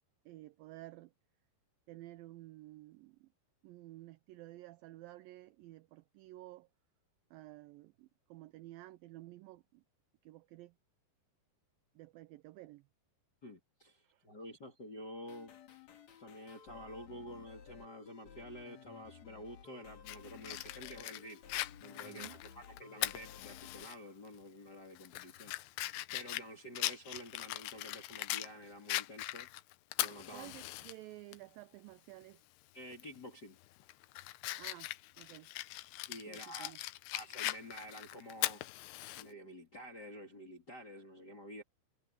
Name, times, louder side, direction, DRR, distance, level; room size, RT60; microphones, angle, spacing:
voice 1, 0.3-1.1 1.9-3.3 3.6-6.7 7.3-9.8 10.2-10.7 12.0-12.8 14.0-14.2 22.1-22.4 30.3-32.4 34.6-34.9 35.2-35.5 36.3-36.8, right 17 dB, 85° right, 2.0 m, -52 dB
voice 2, 13.4-15.6 16.2-21.4 21.8-25.5 26.1-29.5 30.0-30.5 32.7-33.6 36.1-36.7 37.1-38.7 39.1-41.6, equal, 30° left, 2.7 m, -49 dB
sound 1, 15.3-23.9, left 7 dB, 50° left, 2.9 m, -56 dB
Fire, 20.1-24.0 24.3-24.4 25.0-28.5 28.9-30.9 31.3-31.4 32.9-33.2 33.6-39.2, left 17 dB, 80° left, 2.8 m, -40 dB
omnidirectional pair, 4.7 m